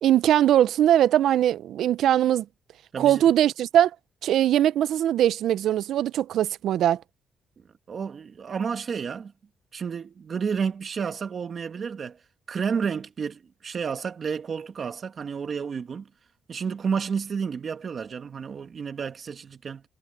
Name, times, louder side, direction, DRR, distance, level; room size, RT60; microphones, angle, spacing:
voice 1, 0.0-2.4 3.0-3.9 4.2-7.0, right 11 dB, 75° right, 0.6 m, -21 dB
voice 2, 7.9-9.3 9.7-12.2 12.5-16.1 16.5-19.8, right 6 dB, 50° right, 2.0 m, -31 dB
cardioid pair, 90°, 0 cm